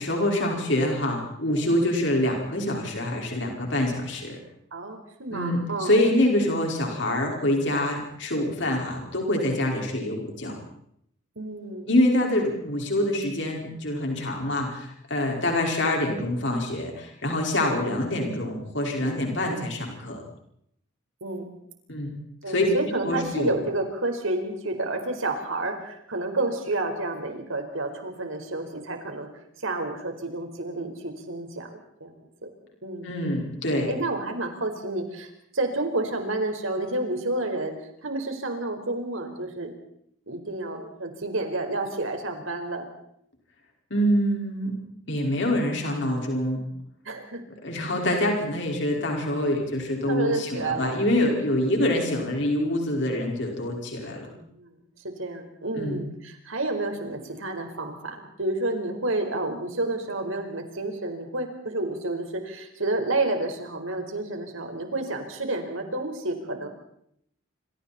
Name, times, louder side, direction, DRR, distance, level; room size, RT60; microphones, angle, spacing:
voice 1, 0.0-4.4 5.3-10.6 11.9-20.2 21.9-22.2 22.5-22.7 23.0-23.6 33.0-33.9 43.9-44.7 45.1-46.6 47.6-54.3 55.7-56.1, left 1 dB, 65° left, 1 dB, 5.1 m, -25 dB
voice 2, 4.7-6.0 11.3-11.9 21.2-21.5 22.4-29.3 29.6-32.5 32.8-33.2 33.8-39.7 40.3-42.9 47.0-47.4 48.1-48.2 50.0-50.9 54.0-66.7, right 2 dB, 85° right, 4 dB, 4.8 m, -30 dB
27.5 x 26.5 x 4.4 m, 0.70 s
head